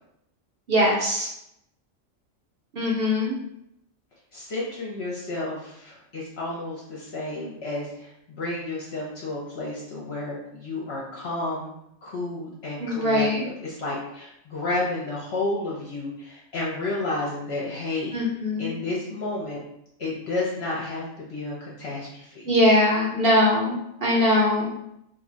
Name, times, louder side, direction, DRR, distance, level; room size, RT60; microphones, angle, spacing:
voice 1, 0.7-1.3 2.7-3.3 12.8-13.4 18.1-18.7 22.5-23.8 24.0-24.7, left 1 dB, 50° right, -3 dB, 0.9 m, -21 dB
voice 2, 4.3-11.7 12.0-18.2 18.6-19.6 20.0-22.5, left 2 dB, 60° left, -4 dB, 0.9 m, -31 dB
2.6 x 2.2 x 3.8 m, 0.77 s
omnidirectional pair, 1.4 m